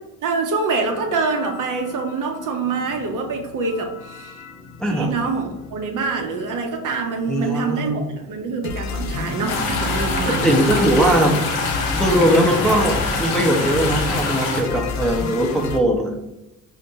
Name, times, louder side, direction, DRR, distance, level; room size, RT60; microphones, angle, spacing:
voice 1, 0.2-4.4 4.9-10.7 11.8-11.9, right 4 dB, 45° right, 4 dB, 0.6 m, -25 dB
sound 1, 0.9-15.8, left 4 dB, 40° left, 0.5 m, -32 dB
voice 2, 4.8-5.1 7.3-8.1 10.2-11.4 11.9-16.1, right 1 dB, ahead, -1 dB, 0.6 m, -20 dB
sound 2, 9.5-14.6, left 3 dB, 85° left, 0.6 m, -25 dB
4.3 x 2.1 x 2.7 m, 0.94 s
hypercardioid pair, 50°, 43 cm